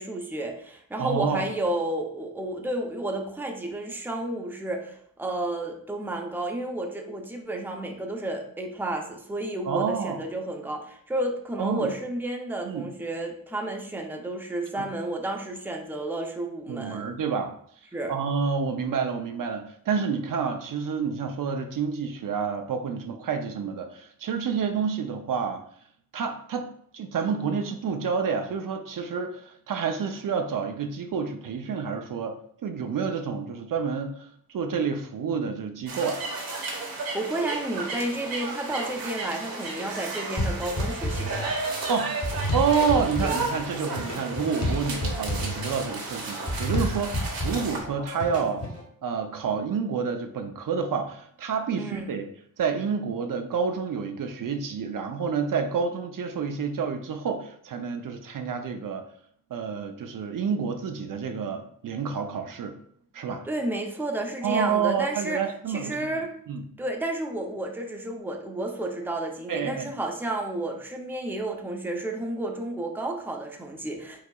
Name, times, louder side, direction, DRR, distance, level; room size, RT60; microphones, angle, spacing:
voice 1, 0.0-17.0 17.9-18.1 37.1-41.6 51.8-52.1 63.4-65.4 65.7-66.3 66.8-74.2, right 1 dB, 5° right, 2 dB, 0.6 m, -31 dB
voice 2, 1.0-1.4 9.6-10.2 11.6-11.9 12.6-12.9 14.7-14.9 16.7-17.5 18.1-25.6 26.1-36.2 41.9-42.2 42.5-48.6 49.0-52.3 52.6-59.0 59.5-62.8 63.1-63.4 64.4-65.9 66.5-66.6 69.5-69.9, right 6 dB, 65° right, 6 dB, 0.5 m, -29 dB
sound 1, 35.9-47.8, right 3 dB, 85° right, 1.1 m, -33 dB
sound 2, 40.4-48.8, left 1 dB, 45° left, 1.2 m, -31 dB
4.7 x 3.9 x 2.3 m, 0.64 s
wide cardioid pair, 115°, 35 cm